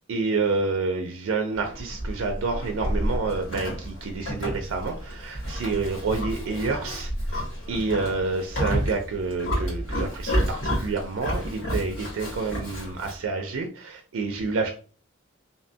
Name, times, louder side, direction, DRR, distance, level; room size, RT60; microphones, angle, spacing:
voice 1, 0.1-7.4 7.7-14.7, right 4 dB, 90° right, 4 dB, 0.4 m, -28 dB
Livestock farm animals working animals, 1.5-13.2, equal, 85° left, 1.4 m, -30 dB
2.7 x 2.1 x 2.6 m, 0.39 s
head